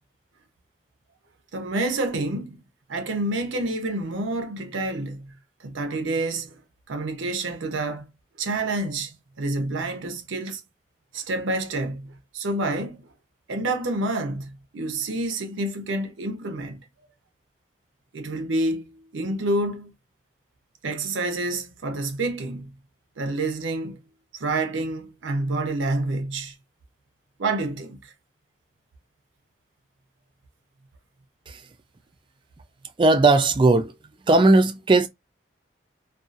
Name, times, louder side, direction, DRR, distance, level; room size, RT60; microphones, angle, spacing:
voice 1, 1.5-2.6 2.9-5.3 5.6-6.6 6.9-8.1 8.4-10.6 11.1-13.1 13.5-16.8 18.1-19.9 20.8-22.7 23.2-24.0 24.3-26.5 27.4-28.1, right 2 dB, 85° right, 0.7 m, -28 dB
voice 2, 33.0-33.9 34.3-35.1, right 2 dB, 25° right, 0.3 m, -17 dB
2.6 x 2.3 x 2.4 m
head